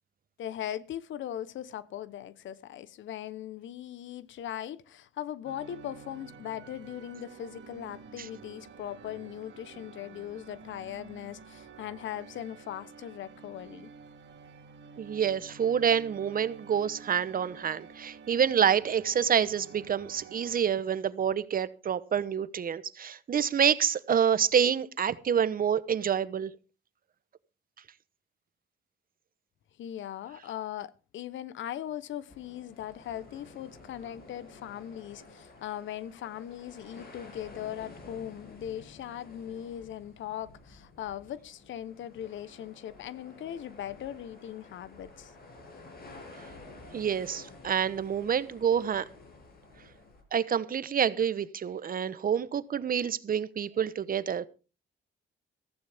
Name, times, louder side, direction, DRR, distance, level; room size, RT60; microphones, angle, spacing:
voice 1, 0.4-13.9 29.8-45.3, left 11 dB, 70° left, 0.9 m, -39 dB
sound 1, 5.4-20.6, right 5 dB, 65° right, 2.5 m, -50 dB
voice 2, 15.0-26.5 46.9-49.0 50.3-54.5, right 8 dB, 45° right, 1.0 m, -27 dB
sound 2, 32.3-50.2, left 3 dB, 50° left, 7.2 m, -51 dB
15.0 x 14.5 x 3.5 m
cardioid pair, 90°, 20 cm